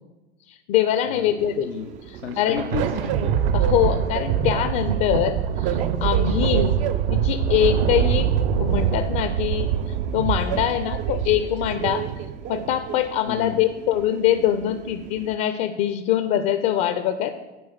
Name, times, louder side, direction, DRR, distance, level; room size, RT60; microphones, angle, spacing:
voice 1, 0.5-1.7 2.1-2.6 3.5-6.8 7.1-8.3 8.6-9.7 10.1-12.0 12.5-17.3, left 11 dB, 40° left, 10 dB, 0.5 m, -23 dB
Train, 1.4-15.3, right 9 dB, 25° right, 0.3 m, -35 dB
voice 2, 1.7-3.4 13.3-13.6, left 8 dB, 85° left, 6 dB, 0.6 m, -33 dB
Thunder, 2.1-12.9, right 8 dB, 55° right, 0.8 m, -24 dB
9.0 x 4.8 x 7.3 m, 1.1 s
figure-of-eight pair, 90°, 34 cm